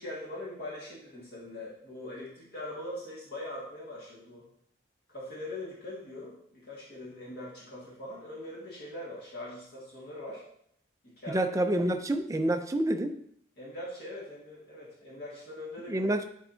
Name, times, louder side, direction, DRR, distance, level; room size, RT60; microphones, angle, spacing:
voice 1, 0.0-4.4 5.1-10.4 11.0-11.5 13.6-16.1, left 1 dB, 50° left, 1.9 m, -42 dB
voice 2, 11.3-13.2 15.9-16.2, right 1 dB, 15° right, 0.4 m, -28 dB
9.6 x 4.4 x 2.7 m
head